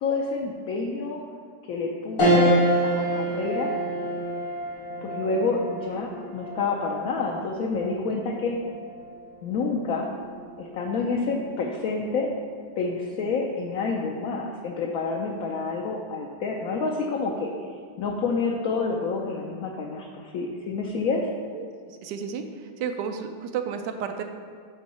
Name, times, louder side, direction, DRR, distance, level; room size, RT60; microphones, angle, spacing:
voice 1, 0.0-1.2 1.7-3.8 5.0-8.6 9.4-10.1 10.6-12.3 12.8-17.5 18.0-21.3, left 4 dB, 70° left, 0 dB, 0.9 m, -28 dB
sound 1, 2.2-11.8 12.3-12.4 13.7-14.1, right 1 dB, 85° left, 2.4 m, -28 dB
voice 2, 21.5-24.2, right 7 dB, 80° right, 6 dB, 1.2 m, -32 dB
8.5 x 3.5 x 4.2 m, 2.2 s
omnidirectional pair, 1.9 m